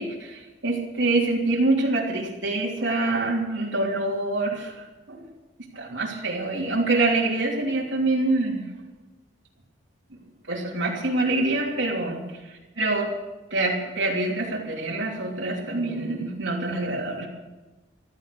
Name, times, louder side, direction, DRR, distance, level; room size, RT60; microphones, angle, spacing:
voice 1, 0.0-5.2 5.7-8.6 10.5-12.2 12.5-13.1 13.5-17.3, right 2 dB, 80° right, -4 dB, 3.1 m, -25 dB
15.5 x 13.0 x 6.7 m, 1.1 s
head